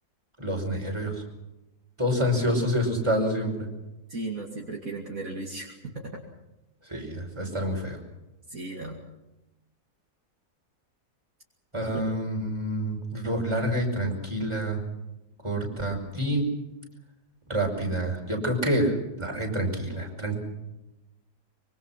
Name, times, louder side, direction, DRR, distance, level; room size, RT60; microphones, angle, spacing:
voice 1, 0.4-1.2 2.0-3.7 6.9-8.0 11.7-14.8 15.4-16.4 17.5-18.9 19.2-20.4, equal, 15° right, 1 dB, 5.5 m, -27 dB
voice 2, 4.1-6.1 8.5-9.0 11.9-12.1, right 2 dB, 55° right, 0 dB, 2.9 m, -36 dB
25.0 x 24.5 x 5.9 m, 0.99 s
omnidirectional pair, 1.8 m